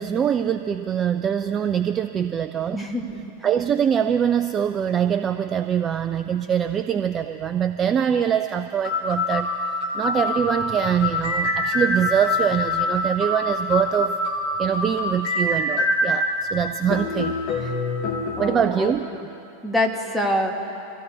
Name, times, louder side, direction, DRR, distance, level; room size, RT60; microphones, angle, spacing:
voice 1, 0.0-2.8 3.4-9.5 9.9-14.2 14.6-17.8 18.4-19.1, right 8 dB, 25° right, 9 dB, 0.4 m, -23 dB
voice 2, 2.7-3.3 18.4-18.9 19.6-20.5, left 1 dB, ahead, 0 dB, 1.6 m, -25 dB
sound 1, 8.2-8.3 8.8-16.4 16.9-18.6, left 2 dB, 45° left, 2.0 m, -25 dB
25.0 x 16.5 x 2.8 m, 2.8 s
figure-of-eight pair, 90°, 0 cm